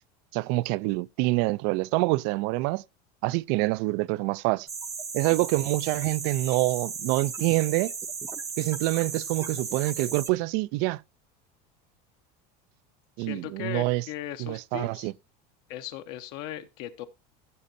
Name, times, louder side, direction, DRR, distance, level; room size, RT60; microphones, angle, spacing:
voice 1, 0.3-2.8 3.2-4.7 5.1-7.9 8.6-11.0 13.2-14.0 14.4-15.1, right 21 dB, 60° right, 0.4 m, -26 dB
sound 1, 4.7-10.3, right 5 dB, 15° right, 0.6 m, -35 dB
voice 2, 13.2-15.1 15.7-17.1, left 13 dB, 65° left, 0.9 m, -38 dB
15.0 x 6.5 x 2.7 m
cardioid pair, 145°, 20 cm